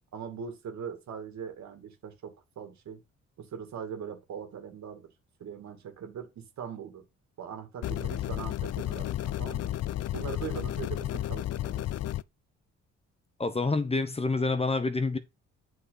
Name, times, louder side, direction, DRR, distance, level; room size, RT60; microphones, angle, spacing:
voice 1, 0.1-3.0 3.4-5.1 5.4-7.0 7.4-9.7 10.1-11.9, right 7 dB, 65° right, 2.4 m, -41 dB
sound 1, 7.8-12.2, left 13 dB, 55° left, 0.5 m, -32 dB
voice 2, 13.4-15.2, left 3 dB, 20° left, 1.0 m, -27 dB
8.6 x 5.4 x 4.1 m
cardioid pair, 90°, 30 cm